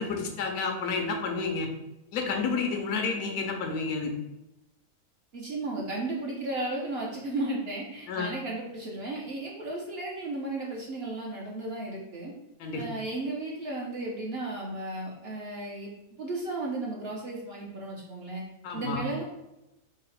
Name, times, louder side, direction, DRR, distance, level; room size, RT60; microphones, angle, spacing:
voice 1, 0.0-1.7 2.1-4.1 8.1-8.3 12.6-12.8 18.6-19.0, left 4 dB, 85° left, 3 dB, 1.2 m, -30 dB
voice 2, 5.3-12.3 12.7-15.9 16.2-18.4 18.7-19.2, right 2 dB, 55° right, -3 dB, 0.7 m, -34 dB
3.8 x 2.0 x 4.1 m, 0.94 s
omnidirectional pair, 1.6 m